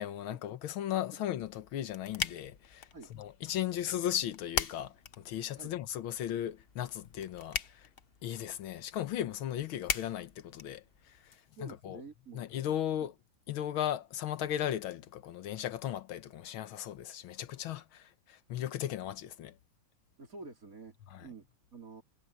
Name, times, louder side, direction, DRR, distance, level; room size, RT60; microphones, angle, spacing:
voice 1, 0.0-7.9 8.2-11.3 11.6-12.0 12.3-13.1 13.5-19.6 21.1-21.3, left 11 dB, 90° left, 1.8 m, -36 dB
sound 1, 1.4-11.4, left 6 dB, 50° left, 0.7 m, -42 dB
voice 2, 11.5-12.5 13.0-13.1 20.2-21.0 21.2-22.0, right 3 dB, 40° right, 4.5 m, -49 dB
omnidirectional pair, 2.2 m